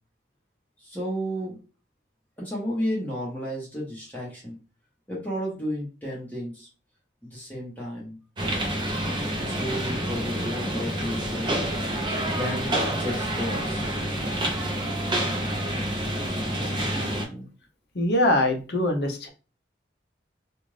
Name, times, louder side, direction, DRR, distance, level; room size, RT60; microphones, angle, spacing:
voice 1, 0.8-1.6 2.4-4.6 5.1-6.7 7.3-8.2 9.4-11.5 12.2-13.8 16.2-17.5, equal, 10° left, -5 dB, 1.1 m, -33 dB
sound 1, 8.4-17.3, right 1 dB, 25° right, 0.6 m, -28 dB
voice 2, 17.9-19.3, left 1 dB, 60° left, 3 dB, 0.7 m, -23 dB
2.5 x 2.5 x 3.2 m, 0.34 s
head